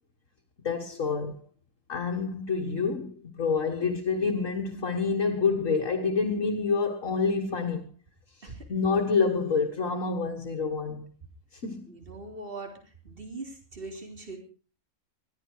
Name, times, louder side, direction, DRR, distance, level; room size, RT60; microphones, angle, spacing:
voice 1, 0.6-1.4 1.9-7.9 8.4-11.1 11.5-11.9, left 4 dB, 65° left, 1.9 m, -28 dB
voice 2, 11.9-12.8 13.0-14.4, right 3 dB, 40° right, 4.0 m, -41 dB
21.0 x 14.0 x 4.7 m
omnidirectional pair, 1.5 m